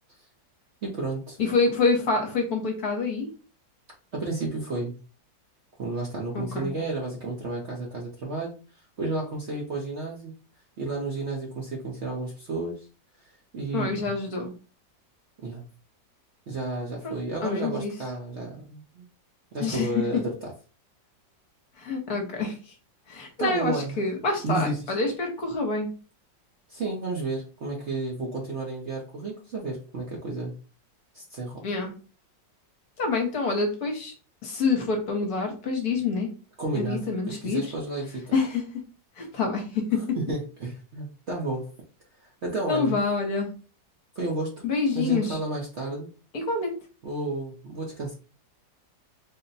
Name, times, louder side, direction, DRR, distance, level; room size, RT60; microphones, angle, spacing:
voice 1, 0.8-1.4 4.1-4.9 5.8-8.6 9.0-10.3 10.8-12.9 13.2-14.1 15.4-15.6 16.5-19.1 19.5-20.5 23.4-24.0 24.4-24.9 26.7-30.5 31.1-31.6 36.6-38.2 39.9-41.7 42.2-43.0 44.2-44.6 44.9-46.1 47.0-48.1, right 2 dB, 55° right, -2 dB, 0.8 m, -32 dB
voice 2, 1.4-3.3 6.3-6.7 13.7-14.5 17.0-17.9 19.6-20.2 21.8-22.6 23.1-25.9 31.6-31.9 33.0-34.1 34.4-36.3 36.7-37.6 38.3-38.6 39.2-40.2 42.7-43.5 44.6-45.4 46.3-46.7, left 4 dB, 60° left, 3 dB, 1.3 m, -27 dB
3.9 x 2.1 x 4.0 m, 0.36 s
omnidirectional pair, 2.0 m